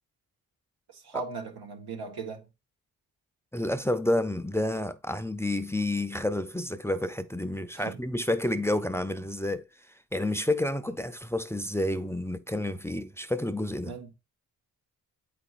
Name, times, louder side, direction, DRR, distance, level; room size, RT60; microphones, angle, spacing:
voice 1, 0.9-2.5 7.7-8.0 13.8-14.1, right 4 dB, 85° right, 1.5 m, -38 dB
voice 2, 3.5-9.6 10.1-13.9, left 1 dB, 5° left, 0.6 m, -29 dB
8.3 x 5.0 x 2.5 m
cardioid pair, 80°, 38 cm